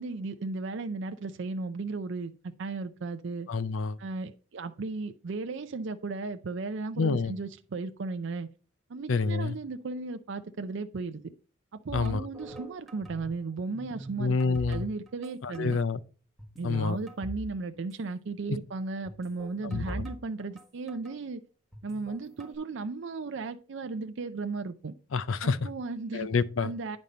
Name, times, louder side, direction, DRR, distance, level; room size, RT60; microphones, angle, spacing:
voice 1, 0.0-2.3 2.6-3.5 4.0-8.5 8.9-11.2 11.8-15.8 16.6-21.4 21.8-24.9 25.4-26.3 26.6-27.0, right 3 dB, 60° right, 0.5 m, -35 dB
voice 2, 3.5-4.0 7.0-7.4 9.1-9.6 11.9-12.2 14.2-14.9 15.4-16.0 16.6-17.0 19.6-20.1 25.1-25.7 26.1-26.7, left 4 dB, 70° left, 0.5 m, -28 dB
sound 1, 11.9-13.4 13.7-15.3 15.5-15.8 16.4-17.5 17.8-17.9 19.1-21.1 21.7-22.5, equal, ahead, 1.4 m, -42 dB
9.2 x 5.3 x 4.2 m
head